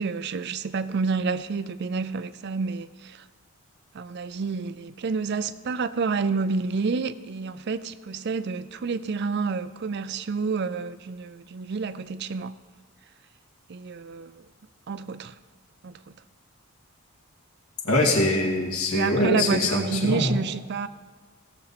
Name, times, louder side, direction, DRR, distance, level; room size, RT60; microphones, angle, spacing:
voice 1, 0.0-3.2 3.9-12.6 13.7-14.4 14.9-15.3 15.8-16.0 18.9-20.9, right 4 dB, 50° right, 0.4 m, -29 dB
voice 2, 17.8-20.4, left 1 dB, 80° left, 2.2 m, -23 dB
17.0 x 7.2 x 4.1 m
head